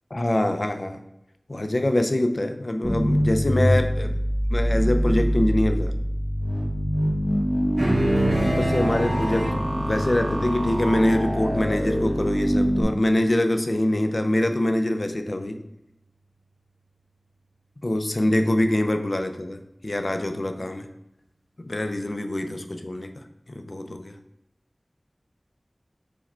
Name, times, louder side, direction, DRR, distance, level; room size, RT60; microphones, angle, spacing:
voice 1, 0.1-1.0 1.5-4.2 4.5-6.0 8.3-15.6 17.8-20.9 21.6-24.1, left 1 dB, 60° left, 6 dB, 0.4 m, -24 dB
sound 1, 2.8-12.8, equal, 15° right, 1.1 m, -24 dB
sound 2, 7.8-12.5, right 1 dB, 55° right, 0.7 m, -28 dB
4.8 x 2.2 x 4.2 m, 0.86 s
wide cardioid pair, 55°, 0 cm